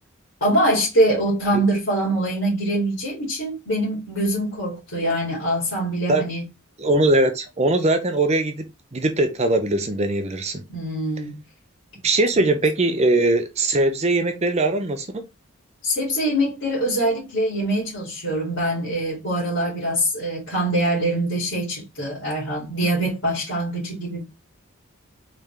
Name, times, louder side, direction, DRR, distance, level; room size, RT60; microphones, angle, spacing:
voice 1, 0.4-6.4 10.7-11.4 15.8-24.2, right 1 dB, 65° left, 2.6 m, -23 dB
voice 2, 6.8-10.6 12.0-15.2, right 2 dB, 30° right, 0.6 m, -21 dB
4.2 x 3.7 x 3.3 m
head